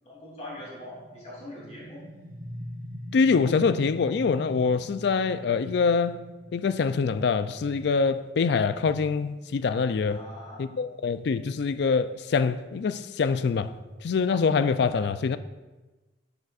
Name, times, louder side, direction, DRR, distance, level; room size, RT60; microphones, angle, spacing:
voice 1, 0.0-2.0 10.1-10.7, left 1 dB, 40° left, 3.0 m, -42 dB
sound 1, 0.6-12.0, equal, 50° right, 1.1 m, -45 dB
voice 2, 3.1-6.2 6.5-10.2 10.6-13.7 14.0-15.4, left 5 dB, 65° left, 0.4 m, -25 dB
12.5 x 6.9 x 2.4 m
head